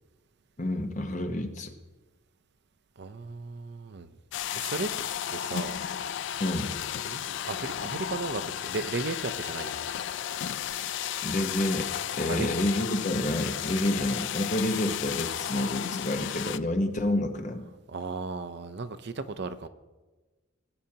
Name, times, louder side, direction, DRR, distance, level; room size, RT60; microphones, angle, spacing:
voice 1, 0.6-1.7 6.4-6.7 11.2-11.9 12.2-17.7, left 1 dB, 35° left, 5 dB, 1.0 m, -29 dB
voice 2, 3.0-4.1 4.5-4.9 5.3-5.8 7.0-9.9 12.2-12.5 17.9-19.7, right 3 dB, 55° right, 12 dB, 0.6 m, -35 dB
sound 1, 4.3-16.6, left 10 dB, 60° left, 0.3 m, -33 dB
19.5 x 9.0 x 2.9 m, 1.2 s
head